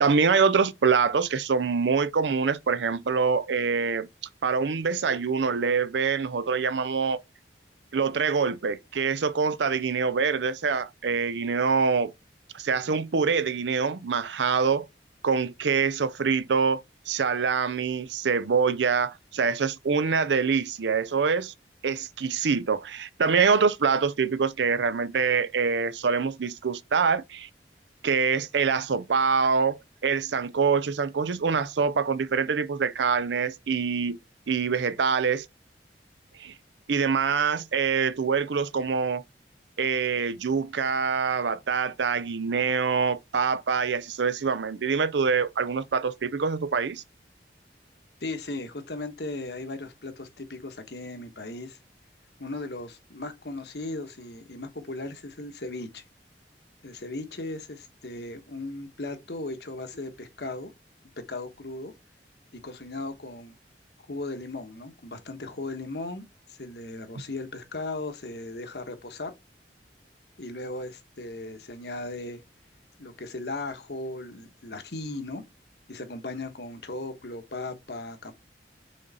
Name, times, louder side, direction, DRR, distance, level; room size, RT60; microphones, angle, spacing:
voice 1, 0.0-4.1 4.4-7.2 7.9-12.1 12.5-14.9 15.2-21.5 21.8-27.5 28.0-34.2 34.5-35.5 36.4-36.5 36.9-39.2 39.8-47.0, right 5 dB, 90° right, 0.6 m, -25 dB
voice 2, 48.2-51.8 52.4-56.0 56.8-60.7 61.3-61.9 62.6-63.6 64.1-69.3 70.4-72.4 73.0-75.4 75.9-78.3, left 2 dB, 70° left, 1.2 m, -37 dB
6.4 x 3.9 x 4.0 m
head